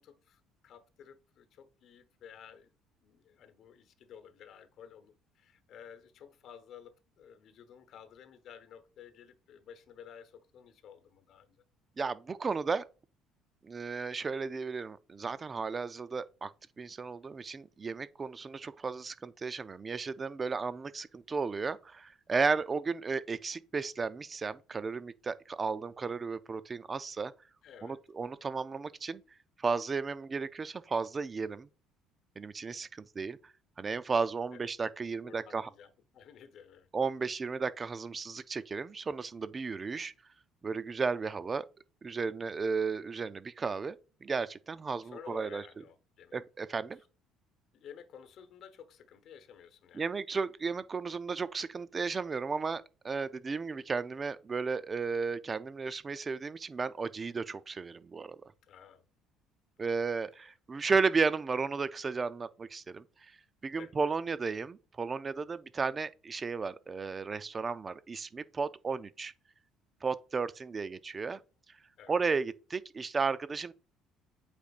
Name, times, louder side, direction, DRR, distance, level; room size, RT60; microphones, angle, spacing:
voice 1, 0.0-2.7 3.0-11.6 27.6-28.0 34.5-34.6 35.2-36.9 44.9-46.4 47.7-50.1 58.6-59.0 59.8-60.1 63.8-63.9 72.0-72.2, left 8 dB, 55° left, 1.0 m, -53 dB
voice 2, 12.0-12.9 13.6-16.5 16.8-27.3 27.8-29.2 29.6-31.7 32.4-33.4 33.8-35.7 36.9-40.1 40.6-41.7 42.0-44.0 44.2-45.6 46.3-47.0 49.9-58.4 59.8-63.0 63.6-69.3 70.0-71.4 72.1-73.7, right 4 dB, 25° right, 0.4 m, -34 dB
8.2 x 5.1 x 2.5 m
cardioid pair, 125°, 0 cm